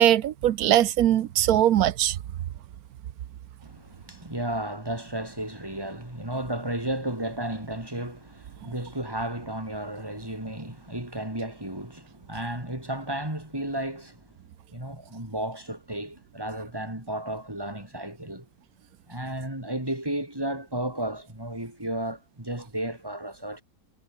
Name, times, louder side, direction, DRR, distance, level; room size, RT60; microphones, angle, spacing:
voice 1, 0.0-2.2, right 12 dB, 85° right, 1.3 m, -21 dB
voice 2, 3.6-14.3 14.7-18.5 19.1-23.6, right 1 dB, 15° right, 5.2 m, -33 dB
omnidirectional pair, 1.5 m